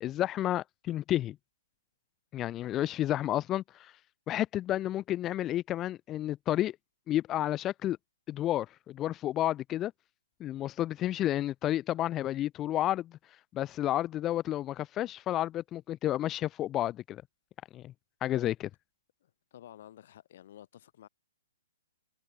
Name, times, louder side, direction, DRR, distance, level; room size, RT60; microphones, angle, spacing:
voice 1, 0.0-1.4 2.3-3.9 4.3-6.8 7.1-8.0 8.3-9.9 10.4-13.2 13.5-17.2 17.7-17.9 18.2-18.7, left 13 dB, 20° left, 1.2 m, -31 dB
voice 2, 19.2-21.1, left 11 dB, 50° left, 4.9 m, -52 dB
figure-of-eight pair, 125°, 0 cm